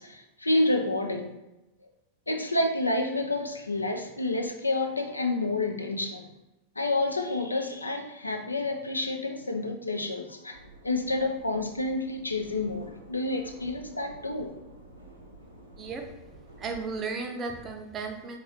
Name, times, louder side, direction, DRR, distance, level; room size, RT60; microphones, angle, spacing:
voice 1, 0.0-1.3 1.8-1.9 2.3-6.3 6.8-10.6 10.8-14.5, left 2 dB, 80° left, 5 dB, 0.4 m, -29 dB
sound 1, 10.5-16.9, right 1 dB, 80° right, 0.7 m, -50 dB
voice 2, 15.8-16.1 16.6-18.4, right 4 dB, 25° right, 4 dB, 0.5 m, -34 dB
3.5 x 3.0 x 3.0 m, 0.96 s
figure-of-eight pair, 90°, 0 cm